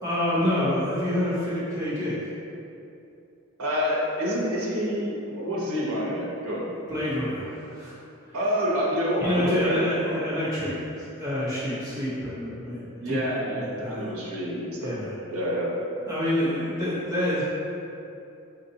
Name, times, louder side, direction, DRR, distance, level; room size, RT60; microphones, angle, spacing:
voice 1, 0.0-2.2 6.9-7.9 9.2-13.2 13.6-14.1 14.8-15.1 16.1-17.4, left 1 dB, 15° right, -11 dB, 0.9 m, -27 dB
voice 2, 3.6-6.7 8.3-10.2 13.0-15.0 15.3-15.7, equal, 85° right, -5 dB, 0.7 m, -28 dB
3.9 x 2.6 x 2.7 m, 2.7 s
head